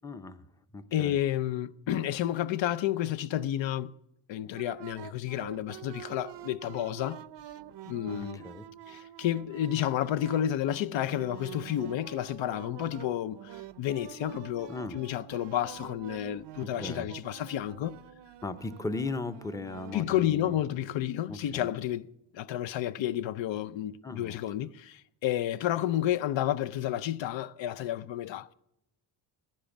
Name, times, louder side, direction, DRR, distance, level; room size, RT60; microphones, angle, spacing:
voice 1, 0.0-0.4 0.7-1.2 8.1-8.7 14.7-15.0 16.6-17.1 18.4-20.6 21.3-21.7 24.0-24.4, left 3 dB, 10° left, 0.6 m, -37 dB
voice 2, 0.9-3.9 4.3-7.2 7.9-8.4 8.9-18.0 19.9-22.1 22.3-28.5, left 12 dB, 80° left, 0.6 m, -31 dB
sound 1, 4.6-20.9, right 12 dB, 70° right, 0.6 m, -47 dB
15.5 x 10.5 x 7.2 m
wide cardioid pair, 145°, 45 cm